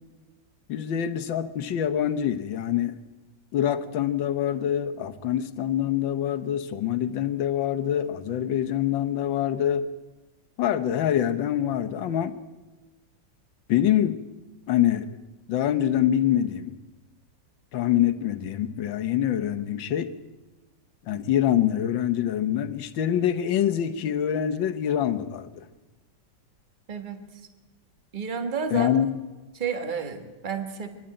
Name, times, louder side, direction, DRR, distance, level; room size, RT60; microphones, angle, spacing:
voice 1, 0.7-3.0 3.5-9.9 10.6-12.4 13.7-14.2 14.7-15.1 15.5-16.7 17.7-20.1 21.1-25.7 28.7-29.1, left 10 dB, 80° left, 9 dB, 1.7 m, -25 dB
voice 2, 26.9-27.2 28.1-28.9 29.5-30.9, right 5 dB, 25° right, 7 dB, 1.5 m, -31 dB
25.5 x 11.5 x 8.9 m, 1.2 s
omnidirectional pair, 2.0 m